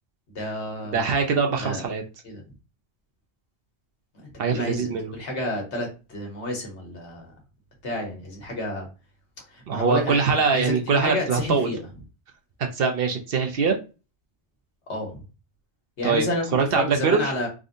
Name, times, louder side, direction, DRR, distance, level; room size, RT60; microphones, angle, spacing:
voice 1, 0.3-1.2 1.6-1.8 2.2-2.4 4.5-7.3 7.8-8.9 9.5-11.8 14.9-15.2 16.0-16.4 16.7-17.5, left 1 dB, 75° left, 1.4 m, -30 dB
voice 2, 0.9-2.0 4.4-5.1 9.7-11.7 12.7-13.8 16.0-16.3 16.5-17.3, right 5 dB, 60° right, 0.8 m, -23 dB
3.6 x 2.6 x 2.5 m
omnidirectional pair, 1.2 m